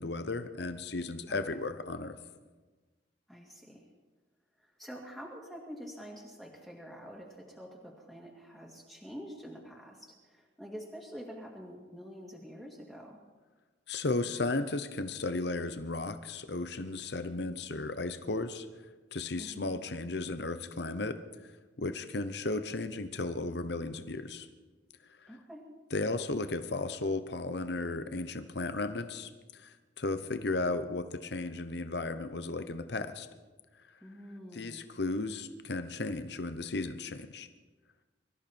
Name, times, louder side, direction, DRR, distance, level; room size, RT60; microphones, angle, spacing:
voice 1, 0.0-2.2 13.9-18.7 19.1-21.2 21.8-24.5 25.9-33.3 34.5-37.5, left 3 dB, 60° left, 10 dB, 0.9 m, -35 dB
voice 2, 3.3-3.9 4.6-13.2 19.4-19.7 25.3-25.7 34.0-34.9, equal, ahead, -3 dB, 2.3 m, -47 dB
23.5 x 14.0 x 4.4 m, 1.3 s
head